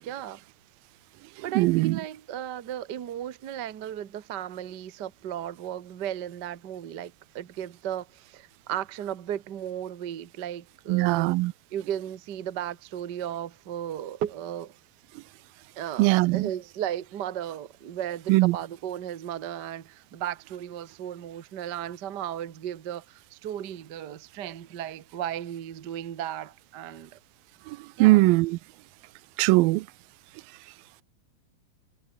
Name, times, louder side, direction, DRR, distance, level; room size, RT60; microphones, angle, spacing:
voice 1, 0.0-0.4 1.4-11.4 11.7-14.7 15.8-27.2 28.0-28.2, right 10 dB, 70° right, 1.0 m, -35 dB
voice 2, 1.6-2.0 10.9-11.5 16.0-16.5 18.3-18.6 27.7-28.6 29.4-29.9, right 21 dB, 90° right, 2.4 m, -21 dB
omnidirectional pair, 4.1 m